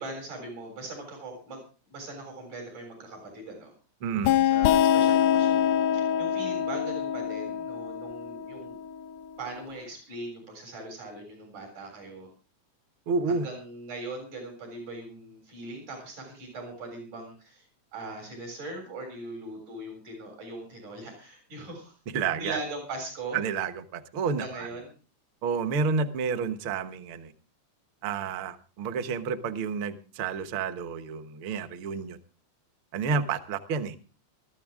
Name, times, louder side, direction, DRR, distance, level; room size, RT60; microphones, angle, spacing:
voice 1, 0.0-1.6 1.9-3.7 4.5-8.8 9.4-12.3 13.3-17.7 17.9-23.4 24.3-24.9, right 2 dB, 80° right, 2 dB, 8.6 m, -40 dB
voice 2, 4.0-4.3 13.1-13.5 22.1-22.6 23.3-24.7 25.4-27.3 28.0-32.2 32.9-33.9, right 5 dB, 55° right, 10 dB, 1.7 m, -30 dB
sound 1, 4.2-9.6, left 9 dB, 90° left, 2.4 m, -25 dB
21.0 x 13.5 x 3.6 m, 0.35 s
omnidirectional pair, 3.4 m